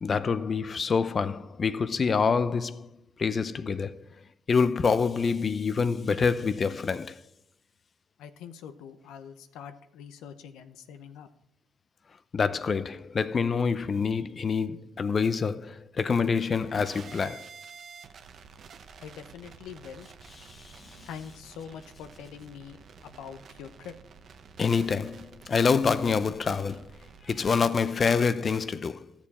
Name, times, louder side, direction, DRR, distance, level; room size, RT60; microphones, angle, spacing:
voice 1, 0.0-2.9 3.2-4.1 4.5-7.2 12.3-17.5 20.5-21.1 24.6-26.9 27.2-29.1, left 5 dB, 40° left, 0.6 m, -26 dB
voice 2, 8.2-11.3 19.0-20.1 21.0-22.8 23.0-23.9, left 7 dB, 90° left, 0.8 m, -44 dB
sound 1, 16.5-27.5, right 5 dB, 60° right, 0.9 m, -50 dB
13.0 x 7.2 x 4.2 m
cardioid pair, 90°, 0 cm